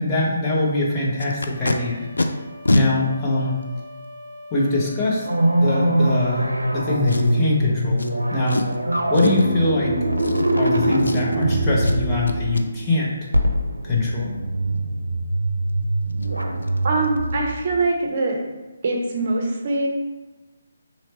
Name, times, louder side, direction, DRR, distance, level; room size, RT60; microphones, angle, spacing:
voice 1, 0.0-2.1 2.7-3.6 4.5-5.3 5.6-6.5 6.7-8.6 9.1-10.0 10.5-13.3 13.8-14.3, left 2 dB, 20° left, -5 dB, 0.8 m, -23 dB
Packing tape duct tape, 1.2-1.8 2.2-2.3 2.7-2.9 3.6-3.7 7.1-7.5 8.0-8.1 8.5-8.8 9.1-9.5 10.2-10.7 11.0-11.4 11.8-12.0 12.3-12.6 15.7-15.8 16.1-16.3 16.6-16.8 17.0-17.3 17.6-17.7, left 2 dB, 70° left, 0.4 m, -24 dB
sound 1, 1.2-7.3, left 1 dB, 10° right, 1.1 m, -42 dB
sound 2, 5.3-17.5, right 1 dB, 85° right, 0.5 m, -23 dB
voice 2, 16.8-18.4 18.8-19.9, right 2 dB, 40° right, 1 dB, 0.6 m, -23 dB
3.1 x 3.0 x 4.1 m, 1.2 s
figure-of-eight pair, 145°, 0 cm